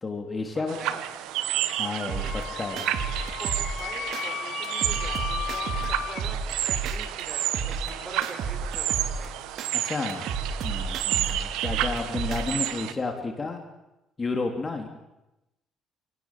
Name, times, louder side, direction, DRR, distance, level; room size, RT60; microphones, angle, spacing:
voice 1, 0.0-0.8 1.8-2.9 9.7-10.3 10.6-13.6 14.2-14.9, left 3 dB, 30° left, 4 dB, 3.5 m, -31 dB
sound 1, 0.7-12.9, right 13 dB, 85° right, 1.4 m, -31 dB
Wind instrument woodwind instrument, 2.1-6.2, left 9 dB, 60° left, 2.3 m, -35 dB
sound 2, 2.1-4.2 4.6-7.2 7.5-9.7 10.1-12.7, right 5 dB, 65° right, 3.2 m, -32 dB
voice 2, 3.8-6.4 6.6-9.3, right 2 dB, 20° right, 4 dB, 7.3 m, -43 dB
29.0 x 18.0 x 7.6 m, 0.92 s
cardioid pair, 90°, 0 cm